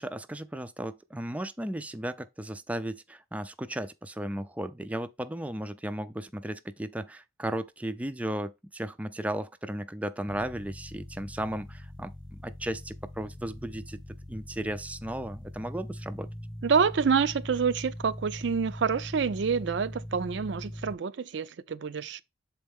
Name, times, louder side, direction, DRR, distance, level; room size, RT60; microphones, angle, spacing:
voice 1, 0.0-14.0 14.3-16.3, right 1 dB, 10° right, 0.3 m, -35 dB
sound 1, 10.3-20.9, equal, 20° left, 0.9 m, -42 dB
voice 2, 16.6-22.2, right 6 dB, 70° right, 0.4 m, -27 dB
7.1 x 4.3 x 3.5 m
head